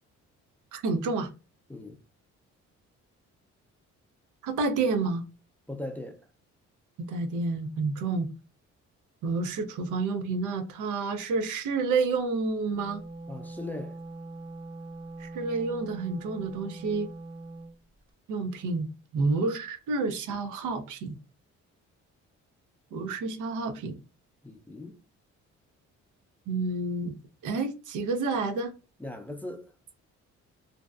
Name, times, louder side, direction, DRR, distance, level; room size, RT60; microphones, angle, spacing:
voice 1, 0.7-1.3 4.4-5.2 7.1-8.3 9.2-13.0 15.2-17.1 18.3-18.9 19.1-21.2 22.9-23.9 26.5-27.1 27.4-28.7, right 3 dB, 80° right, 0.5 m, -29 dB
voice 2, 5.7-6.3 13.3-14.0 24.4-25.0 29.0-29.7, left 1 dB, 5° left, 0.4 m, -39 dB
Wind instrument woodwind instrument, 12.6-17.8, right 2 dB, 45° right, 0.8 m, -42 dB
2.6 x 2.1 x 2.3 m
cardioid pair, 90°, 30 cm